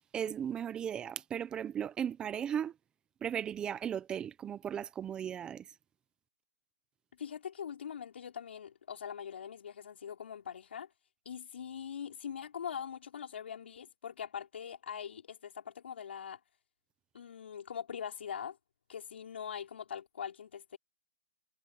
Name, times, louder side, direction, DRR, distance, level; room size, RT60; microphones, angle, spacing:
voice 1, 0.1-2.8 3.2-5.8, right 9 dB, 15° right, 1.1 m, -36 dB
voice 2, 7.1-10.9 11.3-16.4 17.1-18.6 18.9-20.8, left 8 dB, 65° left, 5.3 m, -42 dB
hypercardioid pair, 150°, 7 cm